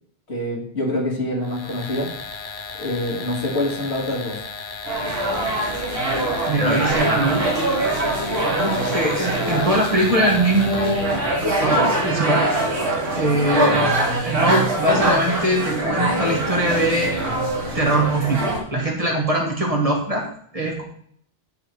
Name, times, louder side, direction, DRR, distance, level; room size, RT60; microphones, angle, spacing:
voice 1, 0.3-2.1 2.8-4.4, left 1 dB, 85° left, -3 dB, 2.5 m, -25 dB
sound 1, 1.4-11.3, left 4 dB, 50° left, 1.0 m, -35 dB
sound 2, 4.9-18.6, right 1 dB, 80° right, 2.2 m, -23 dB
voice 2, 6.5-7.4 8.5-12.4 13.1-13.9 14.2-17.1 17.7-20.2 20.5-20.8, right 1 dB, 35° right, -1 dB, 1.6 m, -22 dB
9.6 x 3.8 x 4.8 m, 0.63 s
omnidirectional pair, 1.1 m